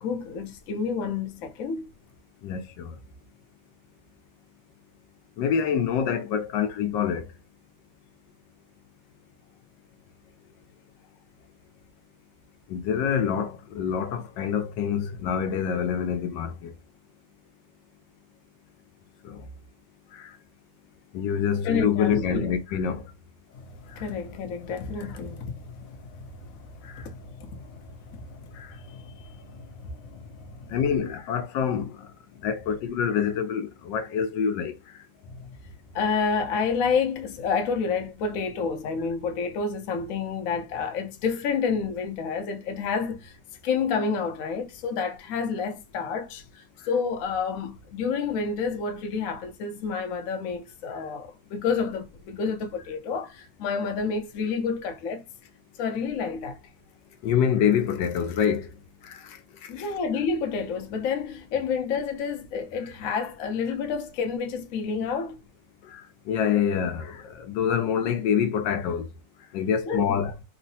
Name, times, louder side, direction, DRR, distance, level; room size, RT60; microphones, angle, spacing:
voice 1, 0.0-1.8 21.6-22.5 23.5-30.8 35.2-35.6 35.9-43.4 43.6-55.3 55.8-56.6 59.7-65.4 69.8-70.2, left 5 dB, 65° left, 0.9 m, -29 dB
voice 2, 2.4-2.9 5.4-7.3 12.7-16.7 19.2-19.4 20.2-20.3 21.1-23.0 26.9-27.0 30.7-31.9 32.4-34.7 57.2-58.7 59.0-59.2 65.9-66.0 66.3-69.1 69.5-70.3, left 7 dB, 85° left, 1.3 m, -26 dB
3.7 x 2.0 x 2.7 m
omnidirectional pair, 1.9 m